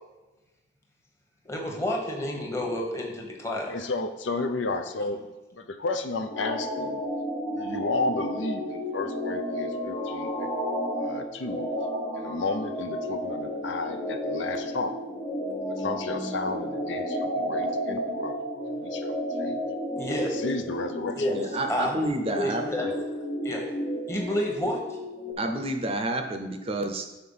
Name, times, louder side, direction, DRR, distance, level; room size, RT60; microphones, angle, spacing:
voice 1, 1.4-3.8 20.0-20.3 21.2-21.3 21.7-22.0 22.4-22.9 23.4-23.7 24.1-25.0, left 1 dB, 15° left, 0 dB, 1.1 m, -29 dB
voice 2, 3.5-5.2 5.6-7.0 7.5-10.5 10.9-11.7 12.1-14.9 15.6-19.6 20.2-21.3 22.8-22.9, left 3 dB, 85° left, 7 dB, 0.6 m, -32 dB
sound 1, 6.3-25.3, equal, 30° left, 1.5 m, -32 dB
voice 3, 21.3-22.8 25.4-27.1, right 1 dB, 30° right, 5 dB, 0.6 m, -29 dB
6.6 x 4.5 x 5.5 m, 1.1 s
head